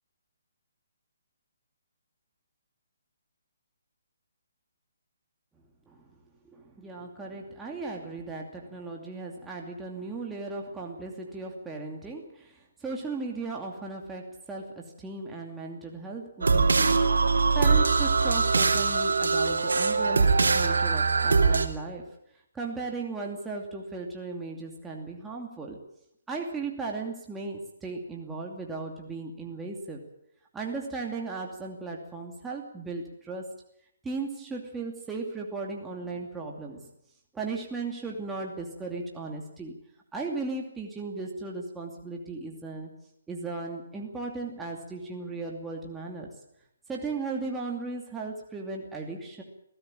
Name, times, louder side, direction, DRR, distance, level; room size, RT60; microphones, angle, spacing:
voice 1, 6.4-22.1 22.5-25.8 26.3-30.0 30.5-33.4 34.0-36.9 37.3-39.8 40.1-42.9 43.3-46.3 46.9-49.4, right 3 dB, 10° right, -1 dB, 2.6 m, -36 dB
sound 1, 16.4-21.7, right 4 dB, 85° right, 3.1 m, -22 dB
21.5 x 16.0 x 9.0 m, 0.77 s
hypercardioid pair, 150°, 0 cm